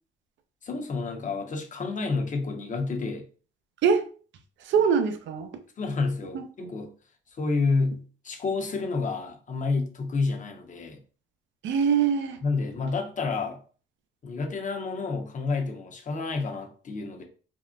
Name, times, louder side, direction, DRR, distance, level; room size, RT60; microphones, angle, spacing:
voice 1, 0.6-3.2 5.8-6.9 7.3-11.0 12.4-13.6 14.2-17.2, left 4 dB, 40° left, 0.7 m, -29 dB
voice 2, 4.6-5.6 6.3-6.7 11.6-12.4, right 6 dB, 70° right, 0.5 m, -24 dB
3.5 x 2.1 x 2.5 m
cardioid pair, 90°, 20 cm